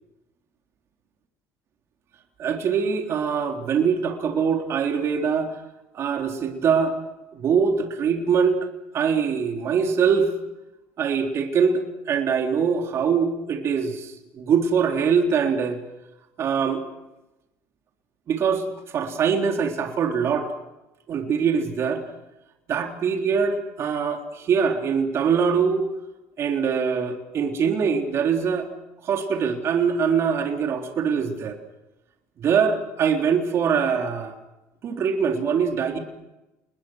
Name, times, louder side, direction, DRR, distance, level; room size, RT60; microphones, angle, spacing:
voice 1, 2.4-5.5 5.9-7.0 7.3-8.6 8.9-10.3 11.0-15.8 16.4-16.8 18.3-18.6 18.9-20.5 21.1-22.0 22.7-25.8 26.4-28.7 29.0-31.6 32.4-34.3 34.8-36.0, right 6 dB, 50° right, 3 dB, 3.8 m, -23 dB
29.5 x 21.5 x 6.4 m, 0.97 s
supercardioid pair, 95°, 6 cm